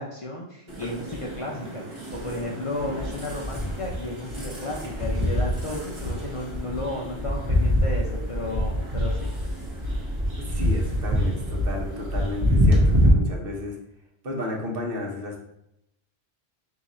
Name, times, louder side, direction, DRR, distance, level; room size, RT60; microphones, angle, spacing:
voice 1, 0.0-9.3, left 1 dB, 40° left, -3 dB, 0.5 m, -33 dB
sound 1, 0.7-13.1, equal, 30° right, 0.9 m, -26 dB
voice 2, 10.4-13.8 14.2-15.4, left 2 dB, 60° right, 0 dB, 1.0 m, -33 dB
3.7 x 2.9 x 4.1 m, 0.81 s
omnidirectional pair, 1.1 m